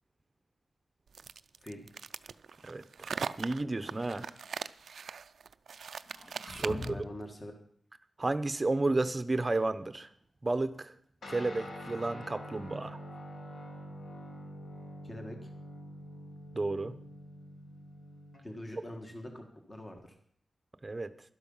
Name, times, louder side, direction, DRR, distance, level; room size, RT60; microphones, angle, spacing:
sound 1, 1.1-7.0, right 6 dB, 75° right, 0.4 m, -40 dB
voice 1, 2.7-3.1 3.4-4.3 6.5-6.9 8.2-10.1 10.4-10.9 11.3-13.0 16.5-17.0 20.8-21.1, right 2 dB, 25° right, 0.8 m, -32 dB
sound 2, 3.7-4.6 6.1-7.3, left 2 dB, 55° left, 2.8 m, -44 dB
voice 2, 6.6-7.5 15.0-15.5 18.4-20.2, left 1 dB, 25° left, 1.7 m, -44 dB
Guitar, 11.2-18.9, equal, 80° left, 2.4 m, -46 dB
12.0 x 11.5 x 5.6 m
wide cardioid pair, 130°, 0 cm